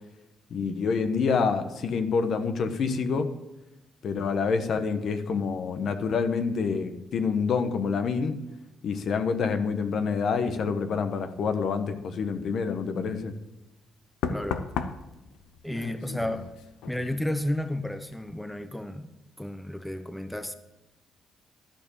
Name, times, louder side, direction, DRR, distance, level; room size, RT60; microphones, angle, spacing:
voice 1, 0.5-3.3 4.0-8.4 8.8-13.3, left 5 dB, 60° left, 1.1 m, -27 dB
Knock, 13.2-13.4 14.2-17.7 18.0-18.4, left 7 dB, 90° left, 0.7 m, -36 dB
voice 2, 14.3-14.6 15.6-16.5 16.9-19.1 19.4-20.6, left 1 dB, 5° left, 0.7 m, -32 dB
13.0 x 4.6 x 8.7 m
cardioid pair, 90°, 0 cm